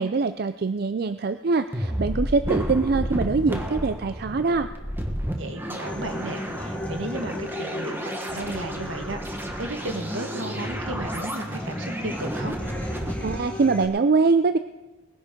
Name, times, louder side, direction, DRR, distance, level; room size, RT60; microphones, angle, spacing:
voice 1, 0.0-4.7 13.2-14.6, right 4 dB, 50° right, 11 dB, 0.4 m, -23 dB
sound 1, 1.7-13.3, equal, 10° right, 1.3 m, -31 dB
voice 2, 5.3-12.6, right 1 dB, 75° right, 5 dB, 1.7 m, -34 dB
Human voice / Acoustic guitar, 5.9-13.8, left 1 dB, 10° left, 1.7 m, -37 dB
20.5 x 11.0 x 5.2 m, 1.1 s
head